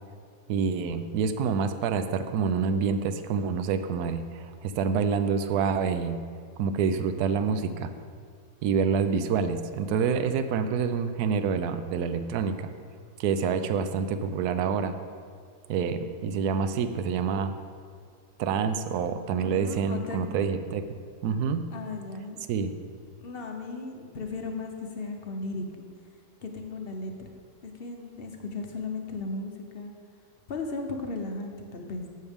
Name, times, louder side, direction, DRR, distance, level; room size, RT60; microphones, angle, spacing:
voice 1, 0.5-6.2 6.6-7.9 8.6-12.7 13.2-15.0 15.7-17.6 18.4-21.6 22.5-22.7, right 6 dB, 75° right, 10 dB, 1.1 m, -27 dB
voice 2, 19.4-20.5 21.7-22.4 23.2-25.8 26.4-27.3 27.6-29.9 30.5-32.0, left 3 dB, 50° left, 3 dB, 0.8 m, -36 dB
14.0 x 6.5 x 3.5 m, 2.1 s
omnidirectional pair, 1.8 m